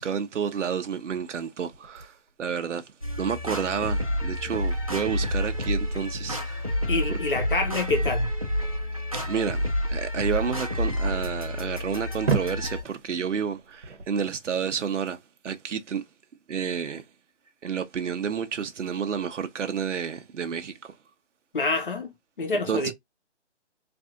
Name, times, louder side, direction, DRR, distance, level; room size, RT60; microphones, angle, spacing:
voice 1, 0.0-2.8 3.2-6.6 7.1-7.2 9.3-15.2 15.4-16.0 16.5-17.0 17.6-20.9 22.7-22.9, right 7 dB, 85° right, 0.6 m, -30 dB
sound 1, 1.7-14.8, right 5 dB, 55° right, 0.8 m, -37 dB
sound 2, 3.0-12.8, left 1 dB, 30° right, 0.5 m, -29 dB
voice 2, 6.9-8.3 21.5-22.9, left 3 dB, 45° left, 1.0 m, -27 dB
3.3 x 2.6 x 2.4 m
hypercardioid pair, 175°, 36 cm